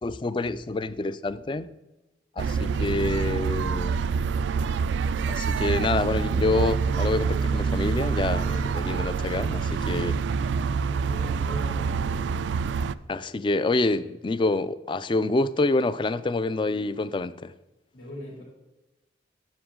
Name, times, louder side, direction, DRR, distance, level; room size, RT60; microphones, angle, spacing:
voice 1, 0.0-1.7 2.4-4.0 5.3-10.1 13.1-17.5, left 2 dB, 25° left, 0.3 m, -27 dB
sound 1, 2.4-12.9, right 5 dB, 80° right, 0.3 m, -26 dB
voice 2, 9.8-10.1 10.7-12.4 17.9-18.4, equal, 85° left, 2.9 m, -40 dB
9.9 x 7.1 x 3.7 m
head